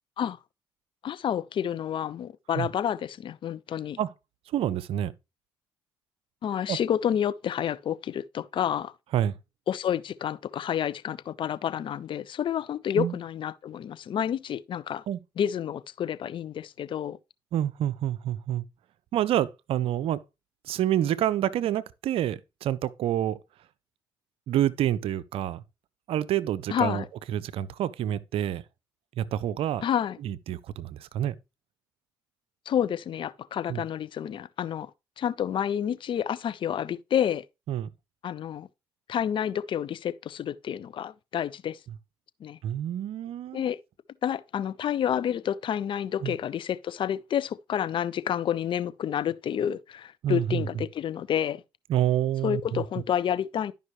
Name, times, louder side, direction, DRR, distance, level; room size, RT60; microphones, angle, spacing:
voice 1, 1.0-4.0 6.4-8.9 9.7-15.0 15.4-17.2 26.7-27.0 29.8-30.2 32.7-34.9 35.2-37.4 38.2-38.7 39.1-41.8 42.4-42.6 43.5-43.8 44.2-51.6 52.4-53.7, left 9 dB, 55° left, 0.5 m, -29 dB
voice 2, 4.5-5.1 6.7-6.8 9.1-9.4 12.9-13.1 15.1-15.2 17.5-18.7 19.1-20.2 20.6-23.4 24.5-25.6 26.1-27.0 27.3-28.6 29.2-29.8 30.2-31.3 33.7-33.8 37.7-37.9 42.6-43.6 46.2-46.4 50.2-50.6 51.9-52.8, right 11 dB, 65° right, 0.5 m, -28 dB
11.5 x 5.3 x 3.1 m
hypercardioid pair, 55°, 10 cm